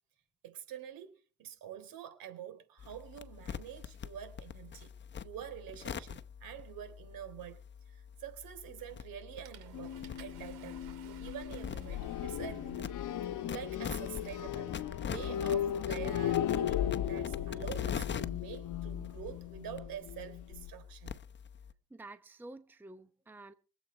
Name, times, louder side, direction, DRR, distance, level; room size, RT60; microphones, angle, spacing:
voice 1, 0.4-4.9 5.2-10.9 11.2-12.9 13.2-21.1, right 10 dB, 65° right, 3.9 m, -47 dB
sound 1, 2.8-21.7, left 7 dB, 30° left, 0.9 m, -45 dB
Water / Toilet flush, 8.8-9.0 9.4-17.3, right 11 dB, 85° right, 2.6 m, -60 dB
sound 2, 9.7-20.7, left 10 dB, 55° left, 1.1 m, -36 dB
voice 2, 21.9-23.5, right 2 dB, 5° right, 0.8 m, -50 dB
24.0 x 8.2 x 4.5 m
cardioid pair, 120°, 37 cm